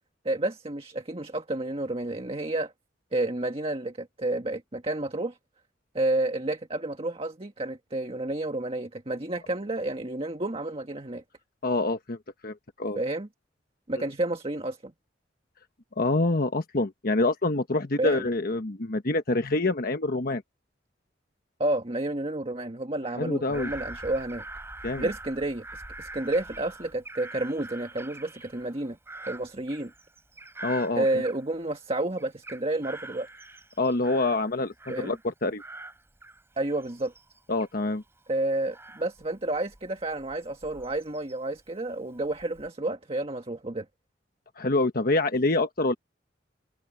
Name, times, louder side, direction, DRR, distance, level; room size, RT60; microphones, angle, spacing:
voice 1, 0.2-2.7 3.1-5.4 5.9-11.2 12.9-13.3 13.9-14.9 18.0-18.2 21.6-24.4 25.0-29.0 29.3-29.9 31.0-33.3 34.9-35.2 36.6-37.1 38.3-43.8, right 2 dB, 30° right, 1.6 m, -30 dB
voice 2, 11.6-12.2 12.4-13.0 13.9-14.0 16.0-20.4 23.2-23.7 24.8-25.1 30.6-31.0 33.8-35.6 37.5-38.0 44.6-45.9, left 2 dB, 50° left, 1.2 m, -26 dB
Bird vocalization bird call bird song / Crow, 23.5-31.8 32.2-35.3 35.6-41.6 42.1-42.7, right 2 dB, 15° right, 4.7 m, -44 dB
head